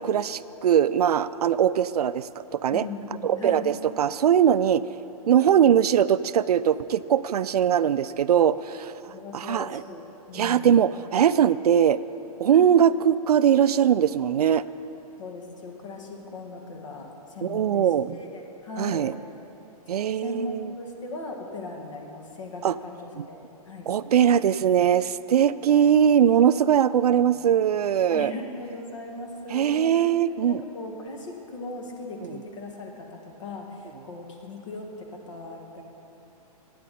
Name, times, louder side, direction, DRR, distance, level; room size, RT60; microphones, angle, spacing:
voice 1, 0.0-2.8 3.2-4.8 5.3-8.9 9.3-9.8 10.3-12.0 12.4-14.6 17.4-18.2 18.8-19.1 19.9-20.7 22.6-22.8 23.2-23.3 23.9-28.3 29.5-30.6 32.2-32.3, right 9 dB, 80° right, 15 dB, 0.4 m, -21 dB
voice 2, 2.7-3.7 9.1-10.8 12.5-12.7 15.2-17.9 18.1-18.3 18.6-19.1 20.2-23.4 23.7-23.9 25.7-26.0 27.1-27.5 28.1-30.0 30.4-35.8, left 2 dB, 50° left, 1 dB, 1.9 m, -38 dB
18.5 x 9.4 x 4.2 m, 3.0 s
hypercardioid pair, 175°, 20 cm